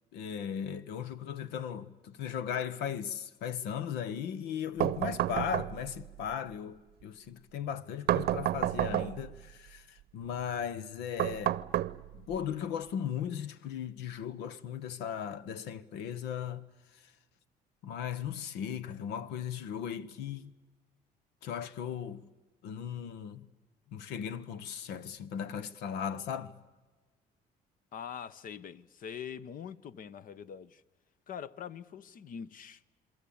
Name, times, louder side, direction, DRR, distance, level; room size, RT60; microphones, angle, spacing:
voice 1, 0.1-11.6 12.1-16.7 16.9-17.1 17.8-20.5 21.4-22.2 22.6-23.5 23.9-26.6, left 8 dB, 90° left, 1.1 m, -37 dB
sound 1, 4.8-6.1 8.1-9.4 11.2-12.4, right 13 dB, 70° right, 0.7 m, -30 dB
voice 2, 27.9-30.8 31.3-32.8, left 8 dB, 55° left, 1.0 m, -43 dB
27.5 x 22.5 x 8.7 m
cardioid pair, 110°, 17 cm